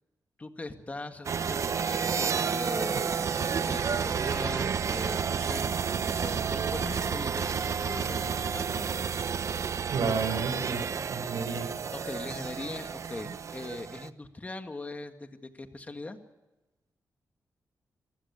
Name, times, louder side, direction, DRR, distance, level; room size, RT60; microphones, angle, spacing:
voice 1, 0.4-5.7 6.0-9.0 11.9-16.2, left 2 dB, 25° left, 7 dB, 1.9 m, -41 dB
sound 1, 1.3-14.1, right 6 dB, 55° right, 0.7 m, -31 dB
voice 2, 9.9-11.7, right 5 dB, 90° right, 8 dB, 4.7 m, -31 dB
26.5 x 15.5 x 8.5 m, 1.1 s
wide cardioid pair, 120°, 6 cm